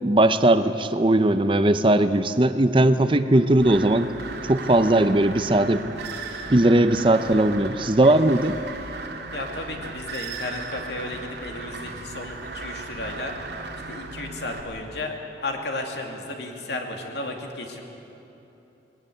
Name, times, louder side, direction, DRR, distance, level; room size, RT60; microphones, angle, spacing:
voice 1, 0.0-4.1 4.5-5.8 6.5-8.6, right 1 dB, 30° right, 11 dB, 0.7 m, -19 dB
sound 1, 3.6-14.6, right 3 dB, 80° right, 2.1 m, -36 dB
voice 2, 9.3-13.3 13.9-15.2 15.4-17.8, left 2 dB, 75° left, 2 dB, 2.7 m, -33 dB
20.0 x 17.5 x 9.8 m, 3.0 s
head